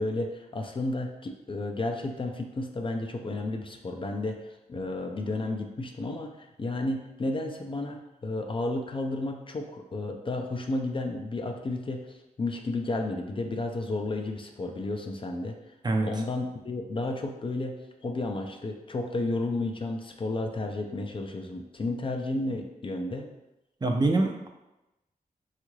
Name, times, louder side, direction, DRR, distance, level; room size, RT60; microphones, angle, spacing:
voice 1, 0.0-15.7 16.0-23.3, left 2 dB, 35° left, 3 dB, 0.4 m, -32 dB
voice 2, 23.8-24.5, right 2 dB, 30° right, 1 dB, 0.4 m, -24 dB
3.6 x 2.4 x 3.1 m, 0.95 s
cardioid pair, 75°, 15 cm